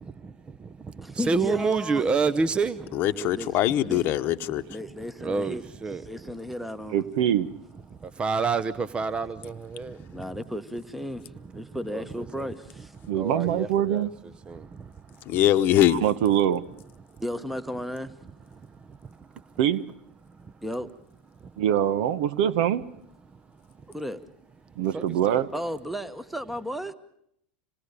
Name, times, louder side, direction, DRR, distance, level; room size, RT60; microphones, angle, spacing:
voice 1, 0.0-3.0 5.2-6.0 8.0-10.1 11.9-12.0 12.4-12.5 13.1-14.1 14.5-14.6 18.9-19.5 20.4-20.5 24.9-25.4, right 4 dB, 20° right, 0.8 m, -29 dB
voice 2, 1.0-2.1 3.1-3.5 3.8-4.0 4.7-5.6 5.9-7.0 10.1-12.9 17.2-18.1 20.6-20.9 23.9-24.2 25.5-26.9, equal, ahead, 1.3 m, -34 dB
voice 3, 2.9-4.6 15.3-16.0, left 12 dB, 45° left, 1.0 m, -22 dB
voice 4, 6.9-7.5 13.1-14.1 16.0-16.6 19.6-19.8 21.6-22.8 24.8-25.5, right 10 dB, 65° right, 1.0 m, -23 dB
26.5 x 19.0 x 6.8 m
hypercardioid pair, 100°, 5 cm